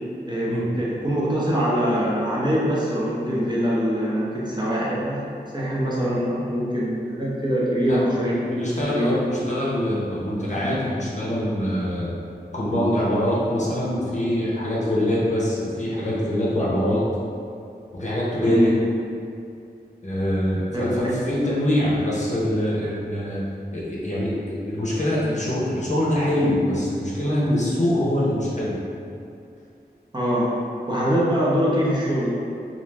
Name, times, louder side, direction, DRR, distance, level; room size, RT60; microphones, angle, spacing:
voice 1, 0.3-5.2 5.5-8.4 8.9-9.1 18.4-18.7 20.7-21.2 30.1-30.5 30.9-32.3, equal, 25° right, -7 dB, 0.6 m, -23 dB
voice 2, 7.9-12.1 12.5-17.0 17.9-18.7 20.0-23.4 23.7-28.8, left 1 dB, 45° left, -7 dB, 0.6 m, -24 dB
2.4 x 2.2 x 3.2 m, 2.5 s
wide cardioid pair, 45°, 17 cm